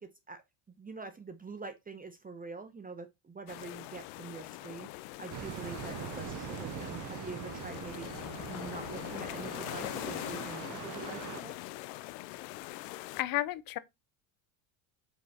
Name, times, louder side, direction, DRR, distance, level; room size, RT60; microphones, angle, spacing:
voice 1, 0.8-11.6, right 4 dB, 20° right, 0.7 m, -45 dB
sound 1, 3.5-13.2, left 19 dB, 90° left, 0.6 m, -42 dB
sound 2, 5.3-11.4, right 14 dB, 40° right, 0.5 m, -43 dB
voice 2, 13.0-13.8, left 15 dB, 45° left, 0.7 m, -33 dB
5.5 x 4.6 x 4.1 m
supercardioid pair, 110°, 48 cm